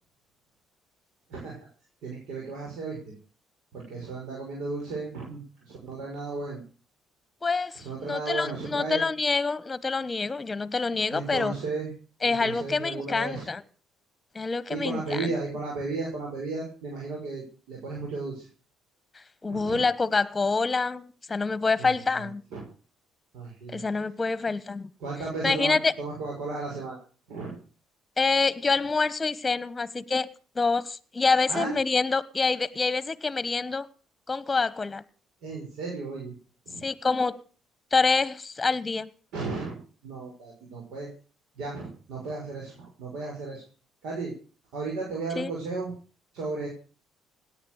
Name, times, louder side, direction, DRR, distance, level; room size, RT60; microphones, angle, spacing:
voice 1, 2.0-3.1 3.7-6.6 7.7-9.0 11.1-11.9 12.2-13.5 14.7-18.5 19.5-19.8 21.8-22.6 23.3-23.8 25.0-27.0 27.3-27.5 31.5-31.8 35.4-36.4 36.6-36.8 39.3-39.8 40.0-41.1 41.6-43.6 44.0-44.3 44.7-45.9 46.3-46.7, right 3 dB, 75° right, 6.2 m, -34 dB
voice 2, 7.4-11.5 12.2-13.6 14.3-15.3 19.1-22.4 23.7-24.9 25.4-25.9 28.2-30.3 30.5-33.9 34.3-35.0 36.8-37.4 37.9-39.1 45.4-45.5, left 4 dB, 25° left, 1.2 m, -26 dB
17.5 x 9.9 x 6.4 m
supercardioid pair, 65°, 0 cm